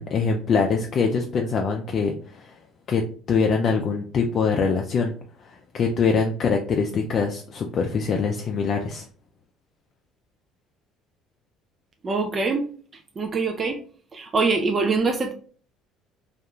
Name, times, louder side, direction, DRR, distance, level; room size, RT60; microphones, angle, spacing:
voice 1, 0.0-2.6 2.9-5.1 5.4-9.0, left 5 dB, 50° left, 2 dB, 0.4 m, -24 dB
voice 2, 12.0-12.7 13.2-13.8 14.1-15.3, right 4 dB, 35° right, 4 dB, 0.4 m, -23 dB
2.4 x 2.2 x 2.9 m, 0.43 s
hypercardioid pair, 70°, 0 cm